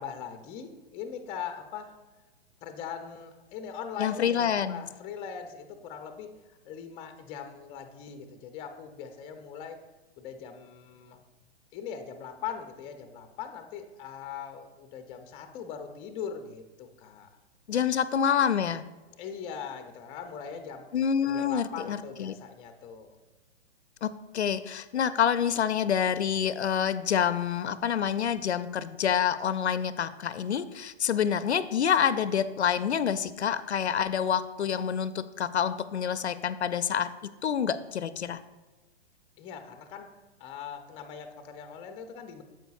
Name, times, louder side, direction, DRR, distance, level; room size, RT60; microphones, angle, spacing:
voice 1, 0.0-1.9 2.6-9.8 10.2-11.2 11.7-17.3 19.2-20.9 21.2-23.2 39.4-40.1 40.4-42.4, left 7 dB, 15° left, 7 dB, 0.5 m, -40 dB
voice 2, 4.0-4.8 17.7-18.9 20.9-22.3 24.0-38.4, left 8 dB, 80° left, 14 dB, 0.5 m, -27 dB
9.1 x 7.6 x 2.4 m, 1.2 s
figure-of-eight pair, 115°, 33 cm